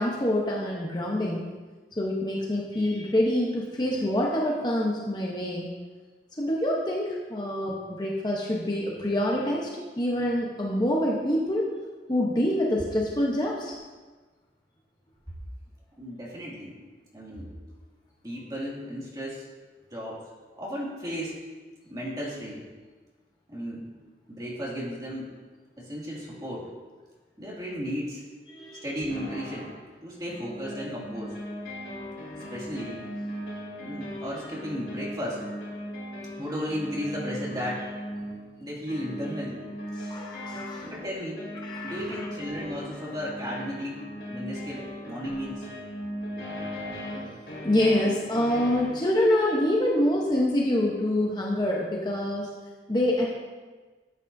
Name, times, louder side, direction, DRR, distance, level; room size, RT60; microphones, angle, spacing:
voice 1, 0.0-1.5 2.0-5.7 6.4-9.7 10.0-11.7 12.1-13.8 28.5-28.9 40.0-40.9 41.6-42.2 44.8-44.9 47.1-47.3 47.6-52.5 52.9-53.3, left 1 dB, 25° left, -3 dB, 0.9 m, -26 dB
voice 2, 16.0-16.8 17.1-17.5 18.2-19.5 19.9-20.2 20.6-21.4 21.9-22.7 23.5-23.9 24.3-25.3 25.8-26.7 27.4-28.2 28.8-29.7 30.0-31.4 32.5-33.0 33.8-35.4 36.4-37.9 38.6-39.6 40.8-41.5 41.8-44.0 44.3-45.7, equal, 20° right, -5 dB, 2.3 m, -34 dB
sound 1, 29.1-29.8 30.3-49.0, equal, 75° left, 2.8 m, -38 dB
13.0 x 8.1 x 2.7 m, 1.4 s
head